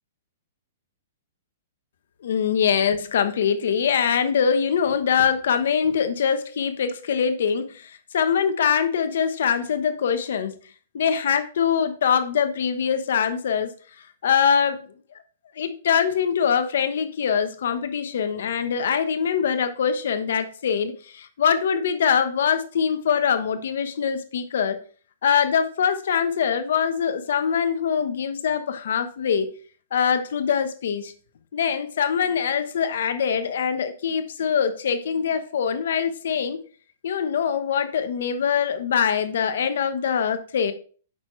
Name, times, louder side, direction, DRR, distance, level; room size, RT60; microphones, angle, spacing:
voice 1, 2.2-10.6 10.9-13.7 14.2-14.8 15.6-24.8 25.2-29.5 29.9-31.1 31.5-36.6 37.0-40.7, left 7 dB, 70° left, 1.1 m, -23 dB
8.7 x 6.3 x 3.2 m
hypercardioid pair, 145°, 0 cm